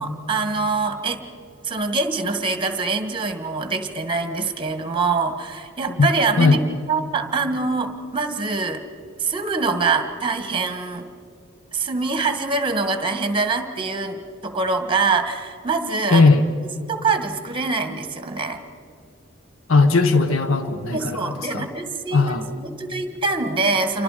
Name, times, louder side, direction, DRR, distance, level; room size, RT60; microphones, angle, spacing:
voice 1, 0.0-1.2 1.6-6.6 6.9-8.8 9.2-11.1 11.7-16.3 16.9-18.6 20.9-24.0, right 4 dB, 25° right, 7 dB, 1.7 m, -24 dB
voice 2, 16.1-16.4 19.7-21.7 22.1-22.5, left 3 dB, 80° left, 8 dB, 1.1 m, -17 dB
29.0 x 25.0 x 5.1 m, 2.6 s
head